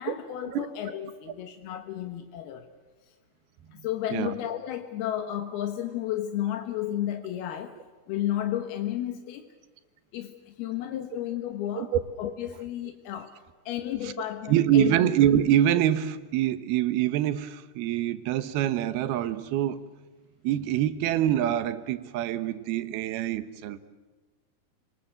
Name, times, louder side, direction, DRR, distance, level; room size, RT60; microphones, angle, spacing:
voice 1, 0.0-2.7 3.7-7.8 8.1-9.5 10.1-11.9 12.2-13.4 13.7-14.9, left 12 dB, 85° left, 3.2 m, -32 dB
voice 2, 14.5-19.8 20.4-23.8, right 11 dB, 85° right, 3.0 m, -25 dB
29.5 x 20.0 x 7.8 m
omnidirectional pair, 4.4 m